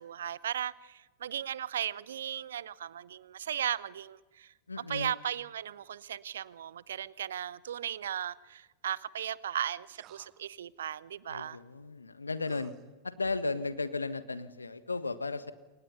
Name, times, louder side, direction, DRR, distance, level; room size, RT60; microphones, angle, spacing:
voice 1, 0.0-4.5 4.9-11.6, right 10 dB, 65° right, 0.8 m, -36 dB
voice 2, 4.7-5.1 11.3-12.7 13.0-15.5, left 3 dB, 80° left, 1.5 m, -35 dB
sound 1, 9.9-10.5 12.5-12.9, right 13 dB, 35° right, 1.4 m, -56 dB
29.0 x 24.5 x 5.6 m
figure-of-eight pair, 90°, 0 cm